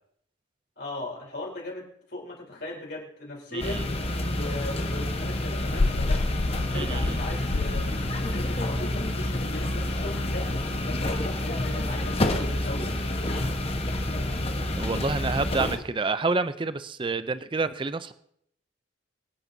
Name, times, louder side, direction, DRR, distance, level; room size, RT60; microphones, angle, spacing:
voice 1, 0.8-3.8 4.3-6.3 6.7-7.9 8.3-13.0, left 2 dB, 55° left, -2 dB, 3.8 m, -38 dB
voice 2, 3.5-3.8 6.7-7.2 14.8-18.1, right 3 dB, 25° right, 13 dB, 0.4 m, -28 dB
sound 1, 3.6-15.8, left 1 dB, 30° left, 1.2 m, -28 dB
sound 2, 4.4-10.8, left 3 dB, 70° left, 0.6 m, -32 dB
24.0 x 10.5 x 2.7 m, 0.71 s
head